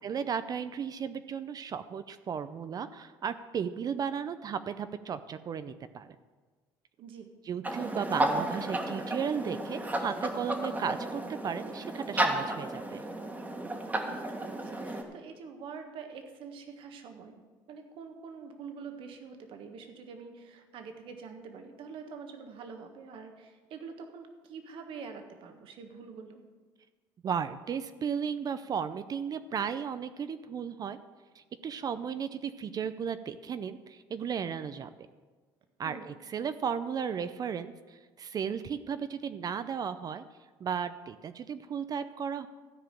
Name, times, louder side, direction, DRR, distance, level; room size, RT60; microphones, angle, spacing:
voice 1, 0.0-6.2 7.5-13.1 27.2-31.0 31.4-34.9 35.8-40.2 40.6-42.5, right 7 dB, 40° right, 12 dB, 0.5 m, -35 dB
voice 2, 7.0-7.3 14.0-17.4 17.7-26.4 35.8-36.2, right 5 dB, 65° right, 5 dB, 1.5 m, -45 dB
sound 1, 7.6-15.0, right 1 dB, 15° right, 1.7 m, -33 dB
13.5 x 4.9 x 8.9 m, 1.4 s
supercardioid pair, 90°, 10 cm